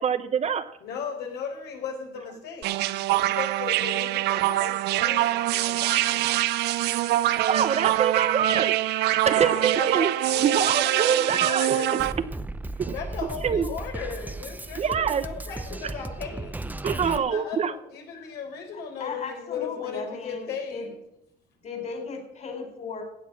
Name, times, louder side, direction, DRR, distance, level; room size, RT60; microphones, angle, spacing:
voice 1, 0.0-0.7 7.5-10.1 10.4-11.8 12.8-12.9 13.4-13.7 14.8-15.2 16.8-17.7, right 7 dB, 40° right, 12 dB, 0.8 m, -25 dB
voice 2, 0.8-2.7 3.1-6.4 9.3-12.1 12.9-20.9, left 6 dB, 75° left, 2 dB, 4.1 m, -36 dB
sound 1, 2.6-12.1, right 15 dB, 80° right, 0.6 m, -24 dB
Drum kit, 12.0-17.2, right 2 dB, 10° right, 0.7 m, -35 dB
voice 3, 18.7-20.9 21.6-23.0, left 4 dB, 45° left, 4 dB, 4.5 m, -36 dB
16.0 x 8.0 x 6.3 m, 0.79 s
cardioid pair, 110°, 17 cm